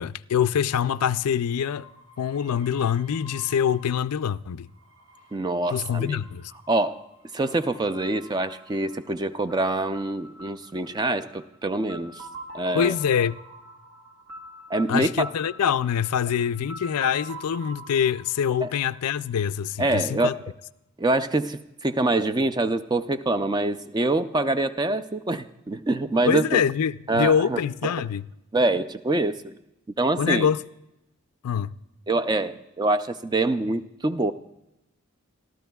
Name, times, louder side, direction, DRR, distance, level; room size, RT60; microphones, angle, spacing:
voice 1, 0.0-1.9 2.2-4.7 5.7-6.5 12.7-13.4 14.9-20.3 26.3-28.3 30.2-30.6 31.4-31.7, left 8 dB, 90° left, 0.4 m, -25 dB
sound 1, 1.7-4.2 4.6-9.1 9.9-10.4, equal, 50° right, 3.5 m, -52 dB
voice 2, 5.3-6.2 6.7-7.0 7.3-12.3 12.5-12.9 14.7-15.3 18.6-18.7 19.8-20.4 21.0-26.6 27.1-27.9 28.5-29.6 30.0-30.5 32.1-34.3, right 2 dB, 20° right, 0.4 m, -25 dB
sound 2, 8.0-19.8, right 1 dB, 80° right, 1.9 m, -44 dB
27.0 x 13.5 x 2.3 m
head